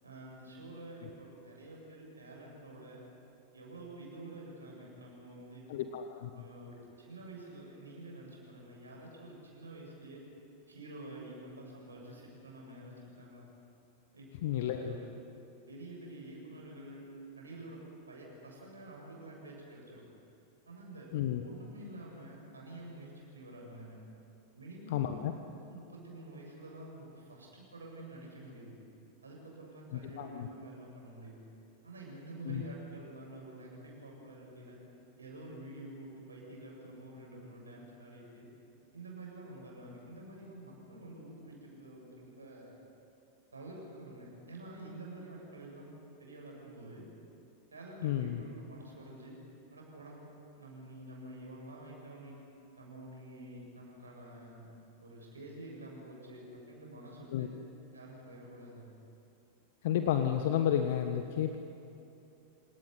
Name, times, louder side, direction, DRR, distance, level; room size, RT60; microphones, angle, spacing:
voice 1, 0.0-3.0 3.5-5.8 6.3-10.2 10.7-13.4 14.1-15.2 15.7-20.1 20.7-24.0 24.6-28.8 29.2-31.5 31.8-34.8 35.2-38.5 38.9-42.7 43.5-45.9 46.2-47.1 47.7-49.4 49.7-50.3 50.6-52.4 52.8-57.5 57.9-58.9, right 1 dB, 75° right, -2 dB, 7.8 m, -48 dB
voice 2, 5.7-6.3 14.4-14.9 21.1-21.4 24.9-25.3 29.9-30.5 32.5-32.6 48.0-48.4 57.3-57.5 59.8-61.6, left 10 dB, 55° left, 7 dB, 1.3 m, -31 dB
27.5 x 18.0 x 9.8 m, 2.9 s
figure-of-eight pair, 90°, 0 cm